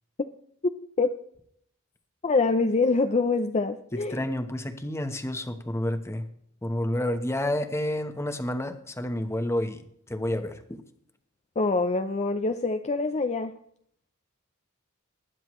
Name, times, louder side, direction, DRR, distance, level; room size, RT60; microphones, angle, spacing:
voice 1, 2.2-4.2 11.6-13.5, left 3 dB, 30° left, 7 dB, 0.5 m, -25 dB
voice 2, 3.9-6.3 6.6-9.8 10.1-10.8, left 1 dB, 15° left, 7 dB, 1.0 m, -30 dB
20.0 x 9.9 x 3.1 m, 0.67 s
head